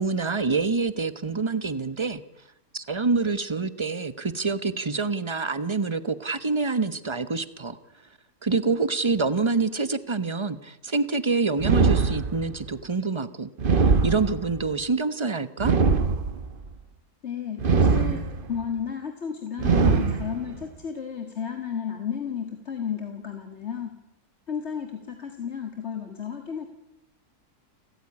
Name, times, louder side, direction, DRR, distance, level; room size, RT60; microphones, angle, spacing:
voice 1, 0.0-2.2 2.7-7.8 8.4-13.5 13.8-15.7, right 4 dB, 20° right, 14 dB, 1.0 m, -26 dB
sound 1, 11.6-12.7 13.6-14.7 15.6-16.6 17.6-18.6 19.6-20.6, right 4 dB, 40° right, 1.2 m, -22 dB
voice 2, 17.2-18.2 18.5-23.9 24.5-26.7, left 7 dB, 50° left, 6 dB, 2.1 m, -32 dB
30.0 x 13.5 x 9.7 m, 0.88 s
omnidirectional pair, 1.5 m